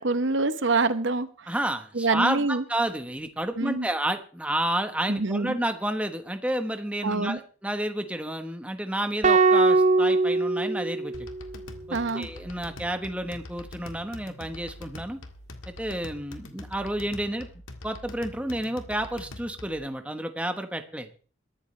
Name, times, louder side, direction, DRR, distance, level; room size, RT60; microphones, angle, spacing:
voice 1, 0.0-1.5 1.9-2.6 3.6-3.9 5.1-5.6 7.0-7.4 11.9-12.3, right 3 dB, 65° right, 12 dB, 1.0 m, -26 dB
voice 2, 1.5-11.3 11.9-15.2 15.7-17.5 17.8-21.1, right 1 dB, 5° right, 7 dB, 1.1 m, -30 dB
sound 1, 9.2-11.6, right 3 dB, 35° right, 0.7 m, -21 dB
sound 2, 11.1-19.9, left 1 dB, 85° left, 1.8 m, -44 dB
22.0 x 12.5 x 3.3 m, 0.39 s
head